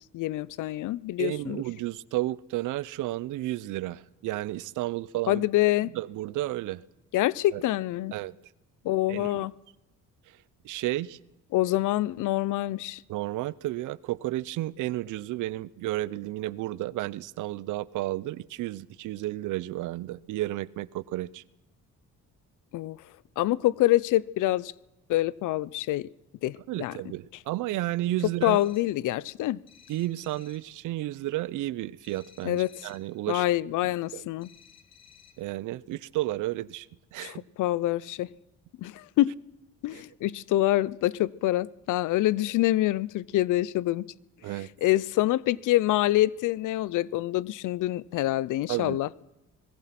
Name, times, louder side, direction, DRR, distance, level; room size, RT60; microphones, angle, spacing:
voice 1, 0.1-1.6 5.3-5.9 7.1-8.1 8.8-9.5 11.5-13.0 22.7-23.0 23.4-24.7 25.1-26.1 26.4-27.0 28.4-29.6 32.4-32.7 33.3-34.5 37.2-38.3 38.8-39.3 39.8-44.0 44.8-49.2, left 15 dB, 85° left, 23 dB, 0.8 m, -26 dB
voice 2, 1.2-5.5 5.8-6.8 7.5-7.6 8.1-8.3 9.1-9.4 10.6-11.2 13.1-21.4 26.7-28.6 29.9-33.4 34.1-34.2 35.4-36.9 37.1-37.5 39.9-40.0 44.4-44.7 48.7-49.0, right 16 dB, 90° right, 21 dB, 0.8 m, -32 dB
sound 1, 28.4-29.0 29.7-30.8 32.0-33.2 34.4-35.5, left 7 dB, 60° left, 3.4 m, -57 dB
25.5 x 21.0 x 6.0 m, 0.92 s
cardioid pair, 90°, 30 cm